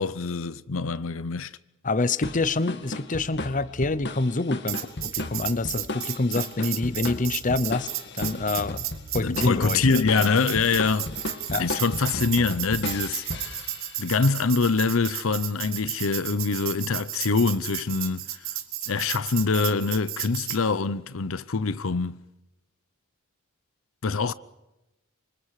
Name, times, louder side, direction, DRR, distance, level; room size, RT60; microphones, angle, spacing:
voice 1, 0.0-1.5 9.2-11.1 11.6-13.2 13.5-13.6 14.0-18.3 18.9-22.2 24.0-24.3, left 4 dB, 75° left, 0.7 m, -24 dB
voice 2, 1.8-7.9 8.1-8.8 9.1-10.4 11.5-11.7, left 3 dB, 40° left, 0.8 m, -27 dB
sound 1, 2.2-14.2, left 2 dB, 55° left, 2.1 m, -35 dB
Tambourine, 4.7-20.6, right 13 dB, 70° right, 2.4 m, -33 dB
27.5 x 25.5 x 4.9 m
head